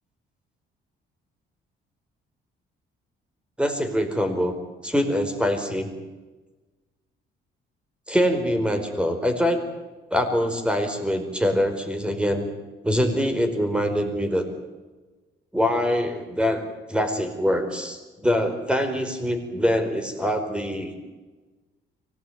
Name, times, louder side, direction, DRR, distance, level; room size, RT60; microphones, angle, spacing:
voice 1, 3.6-4.5 4.8-5.9 8.1-9.6 10.1-12.5 12.8-14.4 15.5-16.6 16.9-20.9, equal, 5° right, 7 dB, 4.7 m, -24 dB
24.5 x 18.5 x 9.4 m, 1.2 s
cardioid pair, 90°, 20 cm